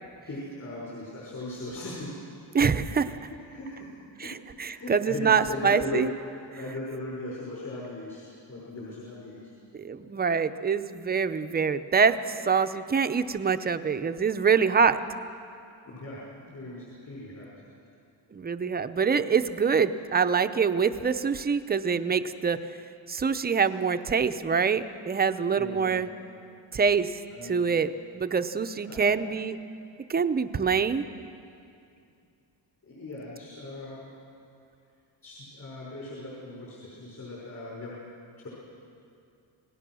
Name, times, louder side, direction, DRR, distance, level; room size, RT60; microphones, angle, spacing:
voice 1, 0.3-2.1 3.3-3.9 4.2-4.3 4.7-9.5 15.8-17.6 25.6-26.0 27.3-27.6 28.9-29.2 32.9-34.1 35.2-38.0 38.4-38.5, left 2 dB, 40° left, -6 dB, 5.7 m, -38 dB
voice 2, 2.5-3.1 4.2-6.1 9.7-12.2 12.5-15.0 18.3-22.6 23.1-26.1 26.7-27.1 27.4-29.6 30.1-31.0, right 6 dB, 20° right, 10 dB, 0.6 m, -25 dB
28.0 x 18.5 x 6.2 m, 2.5 s
cardioid pair, 160°, 43 cm